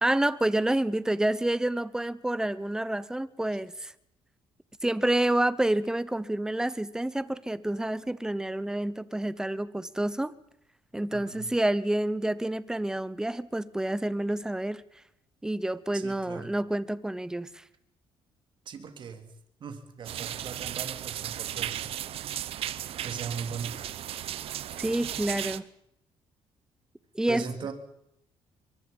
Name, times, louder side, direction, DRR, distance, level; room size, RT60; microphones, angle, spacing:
voice 1, 0.0-3.9 4.8-10.3 10.9-14.8 15.4-17.6 24.8-25.7 27.1-27.4, right 1 dB, 5° right, 0.9 m, -28 dB
voice 2, 11.1-11.5 15.9-16.5 18.7-19.3 19.6-21.9 23.0-23.9 27.3-27.7, right 6 dB, 50° right, 2.9 m, -39 dB
sound 1, 20.0-25.6, right 11 dB, 65° right, 0.9 m, -35 dB
23.5 x 23.5 x 5.4 m
cardioid pair, 115°, 11 cm